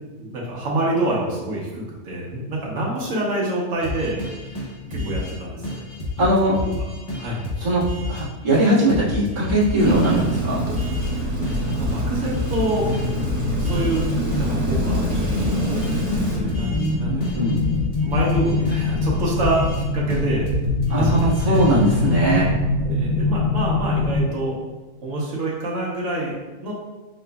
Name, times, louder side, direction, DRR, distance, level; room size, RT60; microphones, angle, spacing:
voice 1, 0.2-4.6 4.9-5.8 6.3-6.5 7.2-7.4 11.1-12.9 13.6-17.5 18.0-19.7 19.9-20.5 20.9-21.7 22.8-24.6 25.0-26.3 26.6-26.7, right 1 dB, 55° right, -5 dB, 1.4 m, -27 dB
sound 1, 3.8-5.4 5.6-8.2 8.5-8.6 8.9-11.1 11.4-14.0 14.3-16.9 17.2-19.8 20.1-22.1, left 2 dB, 35° left, 0.5 m, -30 dB
voice 2, 6.2-6.6 7.6-10.6 16.7-17.6 20.9-22.5, right 1 dB, 30° right, -14 dB, 1.7 m, -20 dB
Rain, 9.8-16.4, right 1 dB, 85° right, 1.8 m, -26 dB
sound 2, 11.2-24.2, left 3 dB, 70° left, 1.1 m, -25 dB
4.9 x 3.9 x 2.3 m, 1.1 s
omnidirectional pair, 1.7 m